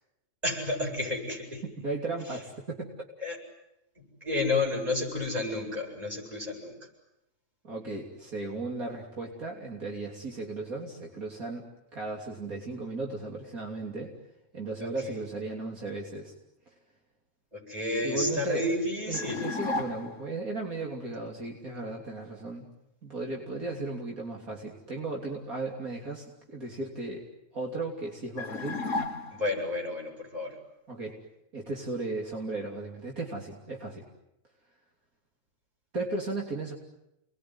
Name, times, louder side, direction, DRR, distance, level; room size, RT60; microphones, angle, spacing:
voice 1, 0.4-1.6 3.2-3.4 4.2-6.7 14.8-14.9 17.5-19.4 29.3-30.5, left 2 dB, 25° right, 0 dB, 8.2 m, -30 dB
voice 2, 1.6-2.9 7.6-11.7 11.9-14.1 14.5-16.3 18.0-18.7 19.1-22.7 23.0-27.3 27.5-28.8 30.9-31.2 31.5-34.1 35.9-36.7, right 3 dB, 70° right, 0 dB, 3.7 m, -36 dB
sound 1, 19.1-20.3 28.4-29.7, left 3 dB, 60° left, 1.7 m, -34 dB
29.5 x 21.5 x 9.6 m, 0.88 s
omnidirectional pair, 1.6 m